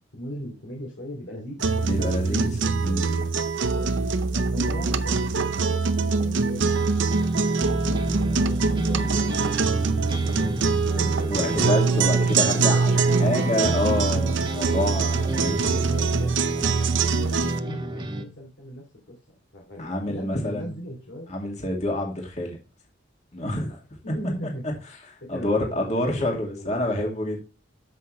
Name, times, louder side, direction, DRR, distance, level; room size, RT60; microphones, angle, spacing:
voice 1, 0.1-2.4 3.7-3.9 4.3-9.5 9.9-12.0 12.5-13.0 14.6-14.9 15.7-19.2 19.5-21.3 23.8-24.8 25.2-27.0, equal, 80° left, 2.7 m, -39 dB
sound 1, 1.6-17.6, right 4 dB, 85° right, 0.7 m, -23 dB
voice 2, 1.8-2.4 2.8-3.2 11.3-15.8 19.8-20.7 21.3-22.6 23.3-23.7 25.3-27.4, left 1 dB, 40° left, 2.3 m, -27 dB
sound 2, 6.7-18.2, right 1 dB, 25° right, 1.4 m, -32 dB
13.0 x 5.9 x 3.2 m
head